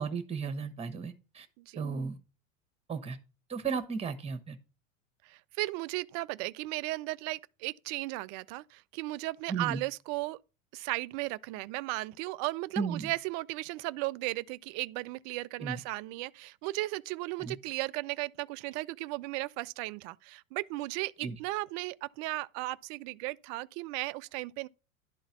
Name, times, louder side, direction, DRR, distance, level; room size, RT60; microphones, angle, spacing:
voice 1, 0.0-1.5 1.7-2.2 2.9-3.2 3.5-4.6 9.5-9.8 12.8-13.1 15.6-15.8 17.4-17.5 21.2-21.3, right 5 dB, 15° right, 1.3 m, -34 dB
voice 2, 5.2-10.4 10.7-24.7, right 20 dB, 40° right, 0.4 m, -36 dB
11.5 x 3.9 x 5.9 m
hypercardioid pair, 85°, 39 cm